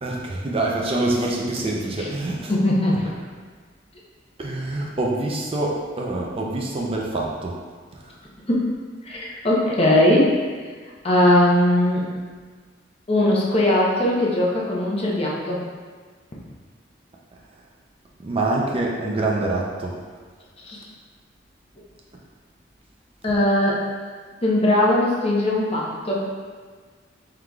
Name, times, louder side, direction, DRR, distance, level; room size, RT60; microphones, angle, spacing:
voice 1, 0.0-2.5 4.4-7.6 7.9-8.0 18.2-19.9, right 2 dB, 30° right, -2 dB, 0.4 m, -25 dB
voice 2, 2.5-3.1 8.5-8.7 9.0-10.4 11.0-12.1 13.1-15.6 20.6-20.8 23.2-23.8 24.4-26.3, left 1 dB, 35° left, -4 dB, 0.7 m, -19 dB
4.7 x 3.8 x 2.3 m, 1.5 s
head